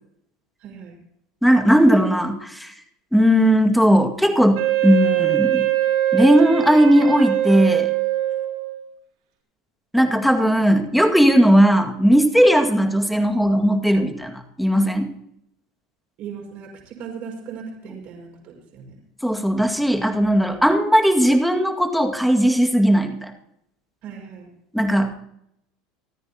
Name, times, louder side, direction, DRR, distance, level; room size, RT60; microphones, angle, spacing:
voice 1, 0.6-0.9 16.2-19.0 24.0-24.5, right 6 dB, 55° right, 0 dB, 5.6 m, -37 dB
voice 2, 1.4-2.7 3.1-5.7 6.1-8.0 9.9-15.1 19.2-23.3 24.7-25.1, equal, ahead, 4 dB, 2.0 m, -17 dB
Wind instrument woodwind instrument, 4.5-8.8, right 13 dB, 85° right, 6.6 m, -22 dB
28.5 x 9.6 x 2.9 m, 0.76 s
hypercardioid pair, 95°, 3 cm